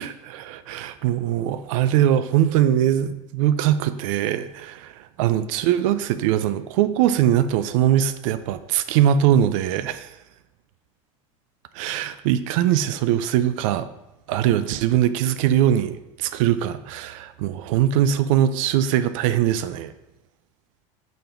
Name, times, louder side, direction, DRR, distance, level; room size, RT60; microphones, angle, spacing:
voice 1, 0.0-10.1 11.7-13.9 14.3-19.9, right 11 dB, 70° right, 12 dB, 0.5 m, -21 dB
5.1 x 3.9 x 5.7 m, 0.93 s
supercardioid pair, 105°, 17 cm